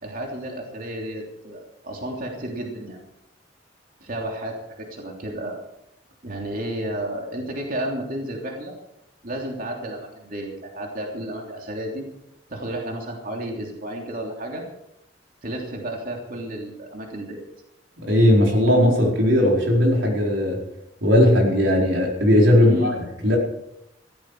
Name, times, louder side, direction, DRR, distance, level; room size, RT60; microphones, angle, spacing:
voice 1, 0.0-3.0 4.0-5.6 6.2-8.7 9.2-12.0 12.5-14.6 15.4-17.4 22.6-22.9, right 1 dB, 50° right, 0 dB, 3.2 m, -32 dB
voice 2, 18.0-20.6 21.0-22.9 23.2-23.4, left 1 dB, 85° right, -1 dB, 4.6 m, -17 dB
15.5 x 14.5 x 4.9 m, 0.80 s
head